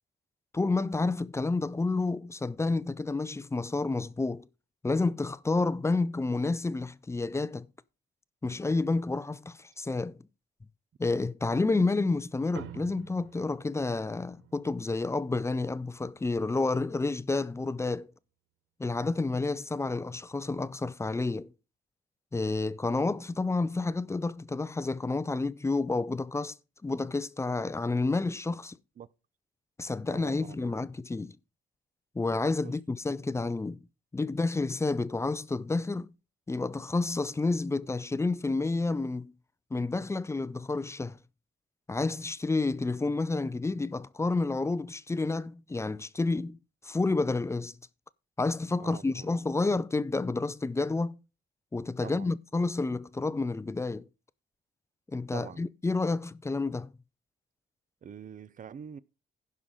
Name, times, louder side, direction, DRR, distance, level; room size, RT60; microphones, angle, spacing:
voice 1, 0.5-4.5 4.8-7.7 8.4-10.2 11.0-18.1 18.8-21.5 22.3-26.6 26.8-28.8 29.8-31.4 32.2-33.8 34.1-36.1 36.5-39.3 39.7-41.2 41.9-46.6 46.8-47.8 48.4-51.2 51.7-54.1 55.1-56.9, left 3 dB, 15° left, 0.4 m, -30 dB
sound 1, 12.5-17.3, right 12 dB, 80° right, 0.6 m, -51 dB
voice 2, 30.1-30.8 32.6-32.7 48.8-49.3 52.0-52.3 55.3-55.6 58.0-59.0, right 8 dB, 40° right, 0.6 m, -45 dB
16.0 x 5.6 x 3.7 m
cardioid pair, 90°, 20 cm